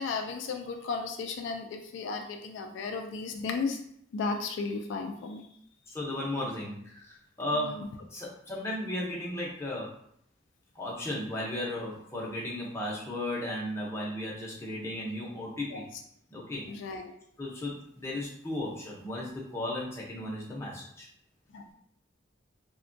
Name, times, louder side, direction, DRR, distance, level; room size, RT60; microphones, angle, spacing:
voice 1, 0.0-3.8 4.1-5.5 7.5-7.9 15.7-15.8 16.7-17.1 21.5-21.7, left 4 dB, 70° left, 5 dB, 0.3 m, -34 dB
voice 2, 5.9-7.8 8.1-9.9 10.7-15.8 16.3-16.7 17.4-21.1, left 1 dB, 15° left, -4 dB, 0.6 m, -35 dB
3.3 x 2.2 x 2.5 m, 0.69 s
head